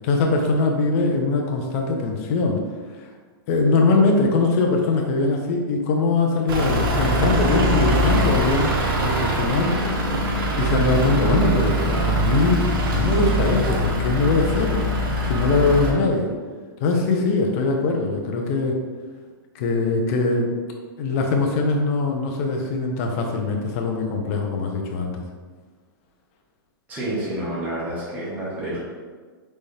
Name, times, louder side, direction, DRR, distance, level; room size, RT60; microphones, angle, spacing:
voice 1, 0.0-2.6 3.0-3.1 3.5-9.8 10.6-14.9 15.2-16.3 16.8-18.7 19.5-20.5 21.0-25.2, left 3 dB, 35° left, 1 dB, 0.6 m, -22 dB
Truck / Idling, 6.5-15.9, right 1 dB, 65° right, 0.9 m, -22 dB
voice 2, 26.9-28.8, right 1 dB, 15° right, -9 dB, 1.2 m, -29 dB
4.2 x 3.4 x 3.3 m, 1.5 s
hypercardioid pair, 155°, 13 cm